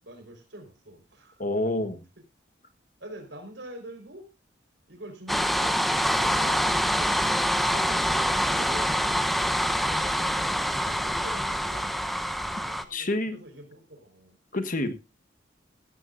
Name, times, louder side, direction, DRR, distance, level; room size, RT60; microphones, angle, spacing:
voice 1, 0.0-1.4 3.0-4.3 4.9-7.4 7.7-12.1 12.6-14.4, right 1 dB, 65° right, 5 dB, 4.6 m, -45 dB
voice 2, 1.4-2.0 12.9-13.4 14.5-14.9, left 1 dB, 45° left, 9 dB, 1.3 m, -27 dB
sound 1, 5.3-12.8, equal, ahead, 0.8 m, -25 dB
16.5 x 13.5 x 2.6 m, 0.26 s
head